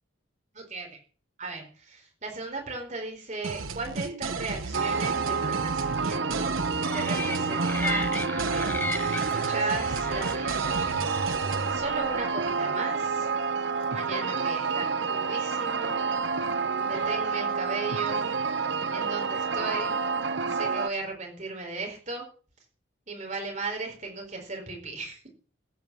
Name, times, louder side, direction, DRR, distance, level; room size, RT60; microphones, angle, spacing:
voice 1, 0.5-1.0 1.4-6.5 6.9-13.3 13.9-16.0 16.8-18.3 18.9-20.0 20.5-22.2 23.1-25.3, right 3 dB, 35° right, 2 dB, 4.4 m, -36 dB
sound 1, 3.4-11.8, right 4 dB, 85° right, 1.1 m, -34 dB
sound 2, 4.7-20.9, right 5 dB, 60° right, 0.9 m, -29 dB
sound 3, 6.8-12.3, left 2 dB, 10° left, 0.7 m, -36 dB
16.0 x 9.5 x 7.1 m, 0.40 s
head